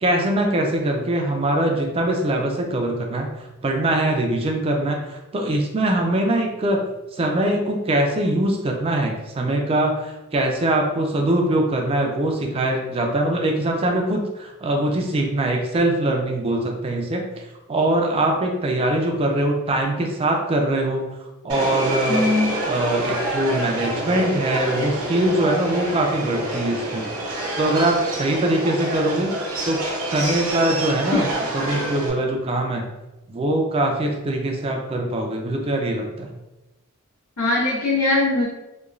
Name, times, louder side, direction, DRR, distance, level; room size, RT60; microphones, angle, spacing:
voice 1, 0.0-6.8 7.2-22.3 22.7-27.1 27.6-29.3 29.6-32.9 33.3-36.3, right 1 dB, 25° right, 2 dB, 0.3 m, -22 dB
Subway metro underground, 21.5-32.1, right 1 dB, 75° right, 0.7 m, -27 dB
voice 2, 22.1-22.5 31.1-31.2 37.4-38.4, left 2 dB, 80° left, -7 dB, 1.3 m, -20 dB
3.0 x 2.2 x 2.4 m, 1.0 s
head